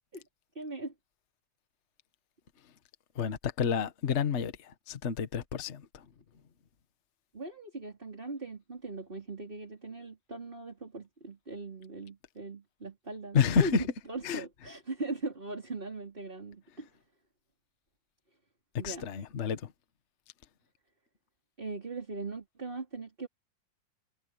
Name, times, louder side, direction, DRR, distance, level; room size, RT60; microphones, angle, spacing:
voice 1, 0.5-0.9 7.3-16.9 18.8-19.1 21.6-23.3, right 2 dB, 15° right, 4.1 m, -40 dB
voice 2, 3.1-6.0 13.3-13.8 14.2-14.4 18.8-19.6, left 6 dB, 60° left, 0.7 m, -29 dB
omnidirectional pair, 3.7 m